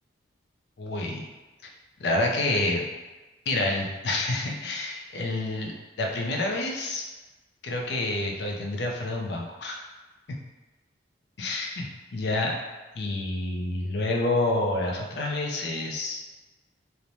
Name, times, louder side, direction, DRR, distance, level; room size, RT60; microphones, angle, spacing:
voice 1, 0.8-1.3 2.0-2.8 3.5-7.0 7.6-9.8 10.3-10.4 11.4-12.6 13.0-16.2, left 2 dB, 60° left, 0 dB, 0.4 m, -28 dB
3.1 x 2.1 x 2.6 m, 1.2 s
head